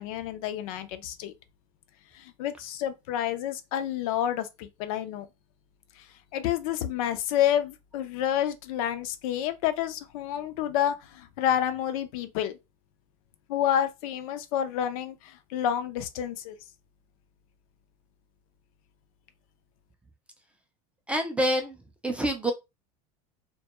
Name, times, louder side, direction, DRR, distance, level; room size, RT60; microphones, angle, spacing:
voice 1, 0.0-1.3 2.1-5.3 6.0-6.1 6.3-12.6 13.5-16.6, left 10 dB, 70° left, 0.4 m, -29 dB
voice 2, 21.1-21.8 22.0-22.5, right 1 dB, 5° right, 0.3 m, -26 dB
2.2 x 2.1 x 2.8 m
supercardioid pair, 125°, 19 cm